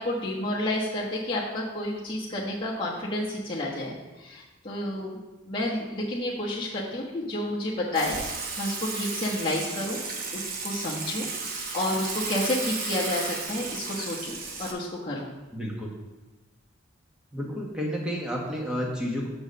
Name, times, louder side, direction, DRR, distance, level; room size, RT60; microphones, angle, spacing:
voice 1, 0.0-5.2 5.5-8.2 8.6-10.0 10.3-15.3, left 1 dB, 25° left, -6 dB, 1.1 m, -30 dB
Water / Water tap faucet / Sink (filling or washing), 7.9-14.7, right 4 dB, 45° right, 1.0 m, -34 dB
voice 2, 15.5-15.9 17.3-19.3, equal, 5° right, -3 dB, 1.3 m, -31 dB
6.6 x 4.7 x 6.4 m, 1.2 s
head